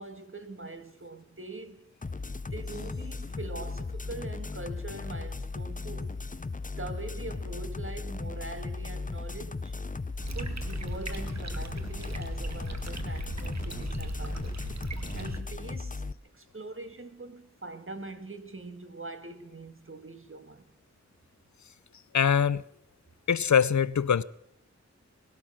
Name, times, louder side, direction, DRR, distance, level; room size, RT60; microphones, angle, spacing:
voice 1, 0.0-1.9 2.5-6.2 6.7-9.7 10.3-14.6 15.1-16.0 16.3-20.7, right 2 dB, 45° right, 2.0 m, -43 dB
sound 1, 2.0-16.1, left 3 dB, 30° left, 0.6 m, -36 dB
sound 2, 10.2-15.4, right 3 dB, 65° right, 1.5 m, -38 dB
voice 2, 22.1-22.6 23.3-24.2, left 7 dB, 75° left, 0.5 m, -23 dB
19.0 x 12.0 x 6.2 m
wide cardioid pair, 45°, 29 cm